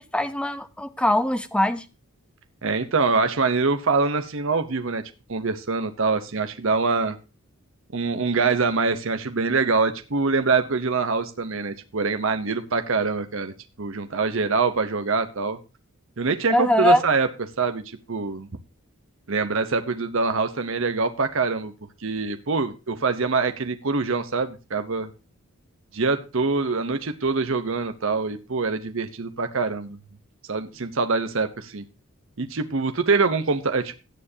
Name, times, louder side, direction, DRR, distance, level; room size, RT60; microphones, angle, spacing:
voice 1, 0.1-1.9 16.5-17.0, left 1 dB, 5° left, 0.6 m, -21 dB
voice 2, 2.6-5.0 5.3-7.2 7.9-13.5 13.8-15.6 16.2-17.3 17.6-17.8 18.1-18.5 19.3-21.7 22.0-25.1 25.9-30.0 30.5-31.8 32.4-33.9, right 4 dB, 60° right, 0.8 m, -24 dB
16.5 x 8.8 x 2.8 m
head